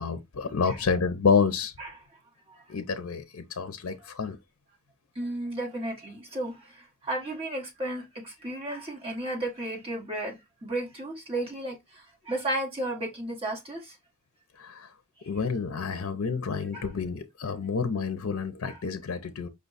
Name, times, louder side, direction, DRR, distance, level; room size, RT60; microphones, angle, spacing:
voice 1, 0.0-1.7 2.7-4.4 14.6-14.9 15.3-19.5, left 5 dB, 70° left, 0.5 m, -29 dB
voice 2, 5.1-13.9 16.7-16.9 18.6-18.8, right 1 dB, 25° right, 1.5 m, -34 dB
5.2 x 2.3 x 3.9 m
head